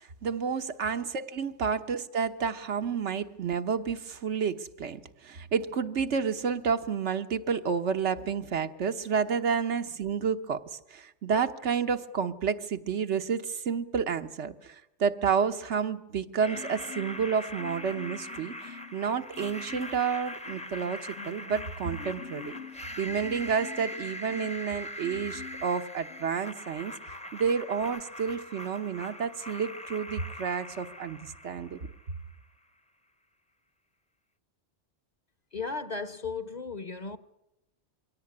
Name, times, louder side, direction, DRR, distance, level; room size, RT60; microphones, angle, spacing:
voice 1, 0.2-10.6 10.9-22.5 23.0-26.9 27.3-31.8, right 6 dB, 85° right, 1.4 m, -30 dB
sound 1, 16.4-32.4, left 1 dB, 5° left, 0.7 m, -42 dB
Marimba xylophone, 16.5-17.3 17.6-19.0 19.3-20.1 20.4-24.6 25.0-25.7 26.1-26.3, left 9 dB, 90° left, 2.0 m, -46 dB
voice 2, 35.5-37.2, left 4 dB, 40° left, 1.0 m, -35 dB
23.5 x 17.0 x 9.7 m
omnidirectional pair, 1.2 m